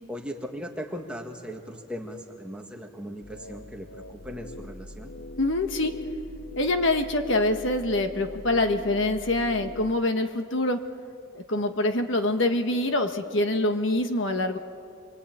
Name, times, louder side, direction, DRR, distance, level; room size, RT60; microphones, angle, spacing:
voice 1, 0.1-5.1, equal, 5° right, 1 dB, 1.8 m, -38 dB
sound 1, 3.2-9.9, left 1 dB, 85° left, 1.5 m, -43 dB
voice 2, 5.4-6.0 6.6-10.8 11.3-14.6, left 2 dB, 55° left, 6 dB, 1.4 m, -25 dB
28.0 x 23.0 x 9.1 m, 2.4 s
head